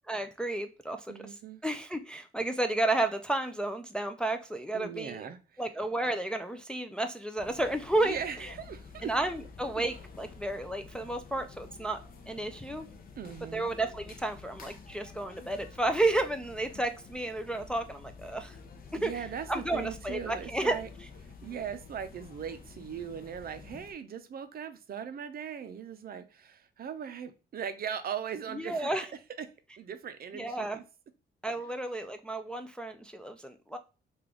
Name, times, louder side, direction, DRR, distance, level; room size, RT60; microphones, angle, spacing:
voice 1, 0.1-1.4 1.6-5.2 5.6-8.5 9.0-12.0 12.3-12.9 13.5-18.6 19.0-20.8 28.5-29.0 30.3-30.8 31.4-33.8, right 2 dB, 5° left, 0.3 m, -32 dB
voice 2, 1.1-1.6 4.7-5.6 8.0-9.1 9.8-9.9 13.2-13.7 18.9-20.9 21.2-28.9 29.4-29.5 29.8-30.8, right 8 dB, 50° right, 0.5 m, -39 dB
sound 1, 7.4-23.9, left 4 dB, 45° left, 0.6 m, -49 dB
3.3 x 2.4 x 3.6 m
cardioid pair, 90°, 20 cm